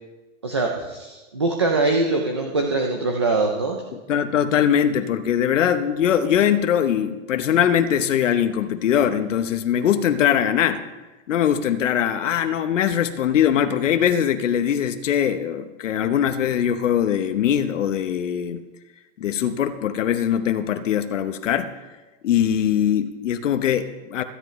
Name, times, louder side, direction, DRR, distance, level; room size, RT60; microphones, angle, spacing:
voice 1, 0.4-3.8, right 3 dB, 25° right, 2 dB, 0.4 m, -23 dB
voice 2, 3.9-10.8 11.3-18.6 19.2-21.7 22.2-24.2, left 9 dB, 70° left, 9 dB, 0.9 m, -21 dB
21.0 x 10.0 x 3.1 m, 1.2 s
hypercardioid pair, 175°, 39 cm